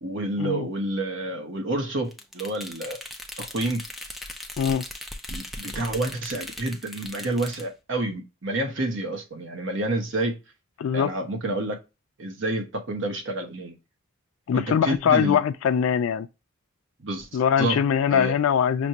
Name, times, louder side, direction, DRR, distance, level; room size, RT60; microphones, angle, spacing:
voice 1, 0.0-3.0 3.4-3.9 5.3-10.4 10.9-11.8 12.2-13.7 14.5-15.4 17.0-17.8 18.1-18.3, right 2 dB, 65° right, 0.9 m, -29 dB
sound 1, 2.1-7.7, left 1 dB, ahead, 0.5 m, -38 dB
voice 2, 10.8-11.1 14.5-16.3 17.3-18.9, left 8 dB, 80° left, 0.3 m, -22 dB
6.0 x 2.2 x 2.7 m
head